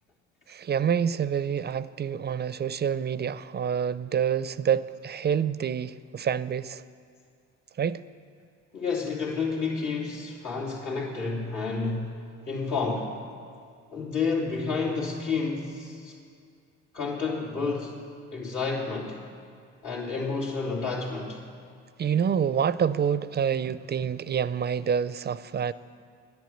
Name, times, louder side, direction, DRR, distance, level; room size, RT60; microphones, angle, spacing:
voice 1, 0.5-6.8 7.8-8.0 22.0-25.7, right 8 dB, 35° right, 0.4 m, -27 dB
voice 2, 8.7-13.2 13.9-16.1 16.9-18.0 18.3-19.2 19.8-21.4, left 4 dB, 80° left, 3.0 m, -30 dB
10.5 x 10.5 x 7.8 m
cardioid pair, 90°, 30 cm